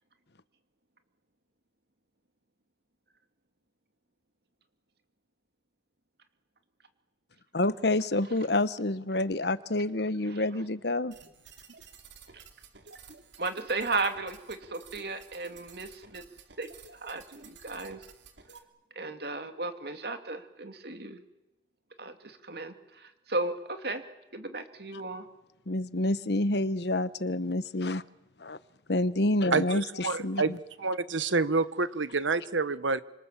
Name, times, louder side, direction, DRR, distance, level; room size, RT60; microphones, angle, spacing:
voice 1, 7.5-11.2 25.7-28.0 28.4-28.6 28.9-30.6, left 2 dB, 60° left, 1.1 m, -28 dB
sound 1, 11.1-18.6, right 5 dB, 75° right, 2.9 m, -52 dB
voice 2, 13.4-16.2 16.6-16.7 17.0-18.0 19.0-21.2 22.0-24.0 24.3-25.3, right 3 dB, 55° right, 2.8 m, -35 dB
voice 3, 29.5-33.0, right 3 dB, 90° right, 1.3 m, -28 dB
29.0 x 27.0 x 7.6 m
head